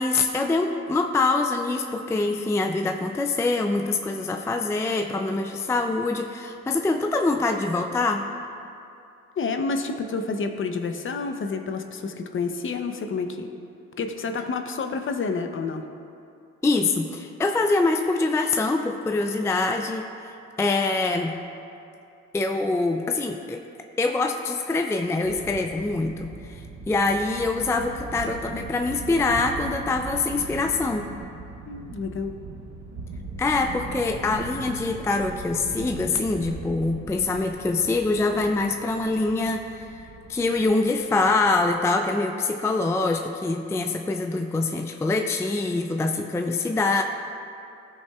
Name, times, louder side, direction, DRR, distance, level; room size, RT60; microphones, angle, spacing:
voice 1, 0.0-8.3 16.6-20.1 20.6-21.3 22.3-23.6 24.0-31.1 33.4-47.0, left 3 dB, 10° left, 4 dB, 0.4 m, -24 dB
voice 2, 9.4-13.5 14.0-15.8 31.7-32.4, left 4 dB, 40° left, 6 dB, 0.7 m, -29 dB
sound 1, 25.2-41.6, right 3 dB, 65° right, 1.1 m, -40 dB
16.0 x 5.6 x 2.4 m, 2.5 s
cardioid pair, 90°, 30 cm